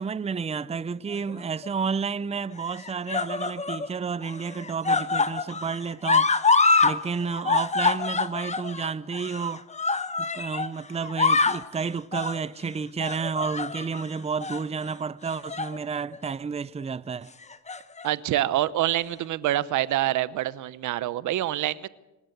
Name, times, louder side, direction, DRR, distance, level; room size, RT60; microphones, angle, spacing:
voice 1, 0.0-6.3 6.8-9.6 10.3-17.3, right 5 dB, 20° right, 0.6 m, -31 dB
sound 1, 1.1-1.7 2.6-3.9 4.2-7.0 7.2-10.7 11.0-11.7 12.1-12.4 13.0-14.0 14.4-14.6 15.3-15.8 16.1-16.3 17.4-18.1 19.0-19.1, left 4 dB, 20° left, 1.0 m, -25 dB
voice 2, 18.0-21.9, right 14 dB, 80° right, 0.8 m, -26 dB
26.0 x 12.5 x 8.1 m
cardioid pair, 90°, 30 cm